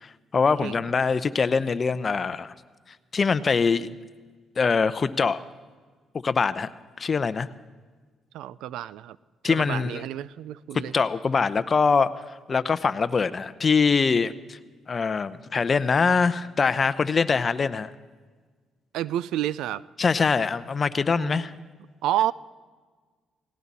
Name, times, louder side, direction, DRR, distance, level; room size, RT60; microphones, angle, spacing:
voice 1, 0.0-2.5 3.1-4.0 4.6-5.4 6.2-6.7 7.0-7.5 9.4-10.1 10.9-12.1 12.5-14.6 14.9-17.9 20.0-21.5, left 5 dB, 40° left, 13 dB, 0.7 m, -23 dB
voice 2, 8.3-9.2 9.4-10.9 18.9-19.8 21.2-21.7 22.0-22.3, right 12 dB, 90° right, 19 dB, 0.4 m, -29 dB
18.0 x 18.0 x 4.2 m, 1.5 s
cardioid pair, 90°, 0 cm